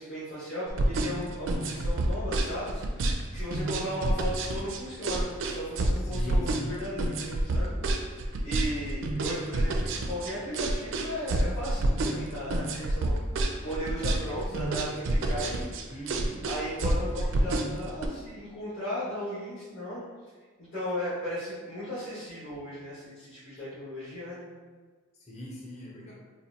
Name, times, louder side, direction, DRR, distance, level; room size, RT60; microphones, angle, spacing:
voice 1, 0.0-3.0 3.3-8.1 8.4-13.1 13.6-15.7 16.4-20.0 20.7-24.4, equal, 60° left, -13 dB, 1.5 m, -36 dB
sound 1, 0.7-18.1, right 2 dB, 65° right, 0.4 m, -28 dB
voice 2, 1.6-2.1 6.0-6.7 15.9-16.4 17.0-17.5 25.2-26.1, equal, 35° left, -4 dB, 0.6 m, -42 dB
4.2 x 2.5 x 2.8 m, 1.5 s
head